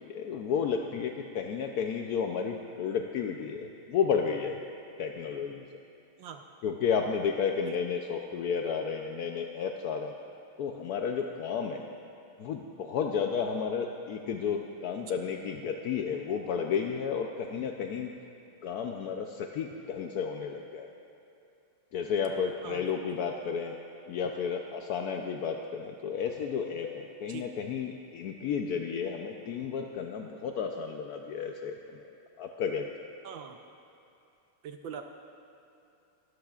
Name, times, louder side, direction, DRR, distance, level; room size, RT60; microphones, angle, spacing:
voice 1, 0.0-4.6 5.0-5.6 6.6-10.1 10.6-11.8 12.4-18.1 18.6-20.9 21.9-23.8 24.1-32.0 32.4-32.9, left 6 dB, 75° left, 3 dB, 0.8 m, -32 dB
voice 2, 22.6-23.2 27.3-27.5 33.2-33.6 34.6-35.0, right 8 dB, 75° right, 5 dB, 1.3 m, -42 dB
23.5 x 13.0 x 2.4 m, 2.7 s
omnidirectional pair, 2.3 m